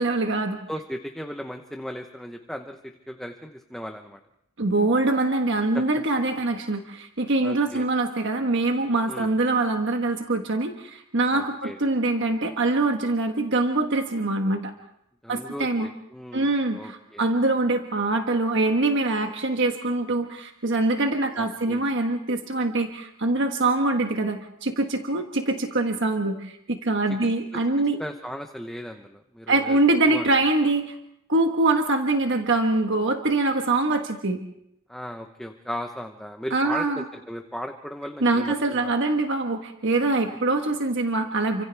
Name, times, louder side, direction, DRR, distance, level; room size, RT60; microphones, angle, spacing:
voice 1, 0.0-0.6 4.6-14.7 15.3-15.9 16.3-28.0 29.5-30.9 31.3-34.4 36.5-37.0 38.2-41.6, right 2 dB, 60° right, 4 dB, 1.4 m, -24 dB
voice 2, 0.7-4.2 5.7-5.8 7.4-7.9 9.1-9.3 11.3-11.8 15.2-17.3 21.3-21.8 28.0-29.8 30.1-30.2 34.9-38.9, equal, ahead, 4 dB, 0.9 m, -36 dB
29.5 x 26.0 x 3.5 m, 0.75 s
head